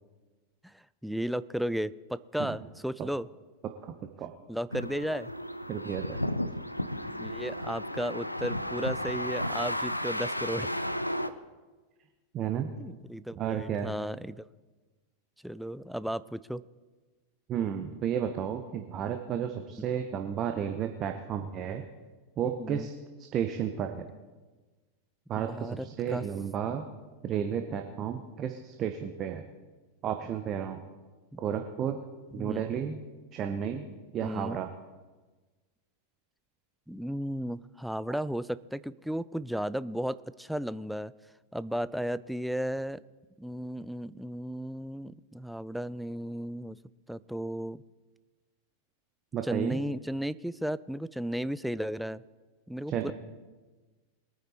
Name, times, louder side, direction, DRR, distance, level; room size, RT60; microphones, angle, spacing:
voice 1, 0.6-3.3 4.5-5.3 6.9-10.7 12.8-14.5 15.4-16.6 19.0-19.1 19.8-19.9 22.6-22.9 25.4-26.3 31.3-31.4 32.3-32.6 34.2-34.6 36.9-41.1 41.5-43.0 43.4-46.8 47.1-47.8 49.4-52.2 52.7-53.1, equal, ahead, 17 dB, 0.4 m, -34 dB
sound 1, 4.7-11.3, equal, 90° left, 0.5 m, -33 dB
voice 2, 5.7-6.2 12.3-12.7 13.4-13.9 17.5-21.8 22.4-22.9 23.3-24.1 25.3-26.9 27.2-29.4 30.0-30.8 31.4-32.0 32.3-33.0 33.3-33.9 34.1-34.7 38.1-38.2 49.3-49.8 52.9-53.1, right 8 dB, 30° right, 6 dB, 0.9 m, -32 dB
22.0 x 9.3 x 4.2 m, 1.3 s
figure-of-eight pair, 90°, 0 cm